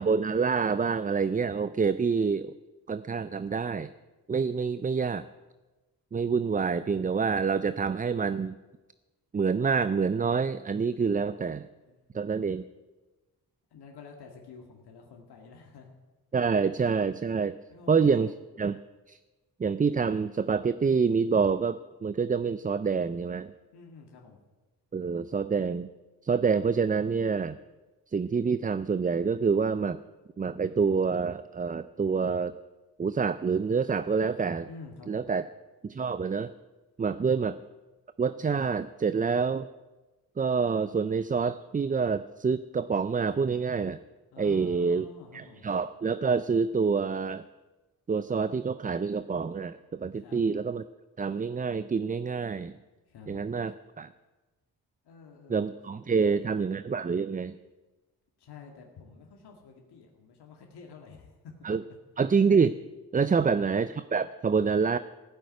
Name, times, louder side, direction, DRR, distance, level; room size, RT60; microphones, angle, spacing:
voice 1, 0.0-2.5 2.9-3.9 4.3-5.3 6.1-8.6 9.3-11.7 12.1-12.6 16.3-17.6 17.9-18.3 18.6-18.8 19.1-19.2 19.6-23.5 24.9-25.9 26.2-27.6 28.1-30.0 30.4-32.5 33.0-34.7 35.1-35.5 35.8-36.5 37.0-37.6 38.2-39.7 40.4-44.0 44.4-45.1 45.3-47.4 48.1-50.8 51.2-52.8 53.3-54.1 55.5-57.6 61.6-61.8 62.2-62.7 63.1-65.0, right 5 dB, 20° right, 14 dB, 0.4 m, -27 dB
voice 2, 11.9-12.2 13.7-15.9 17.7-18.2 23.7-24.4 34.7-35.3 37.2-37.3 44.3-45.6 50.2-50.4 53.1-53.5 55.0-56.6 58.4-61.8 63.2-63.4, left 5 dB, 75° left, 1 dB, 2.1 m, -49 dB
15.0 x 8.1 x 9.4 m, 1.2 s
cardioid pair, 75°, 39 cm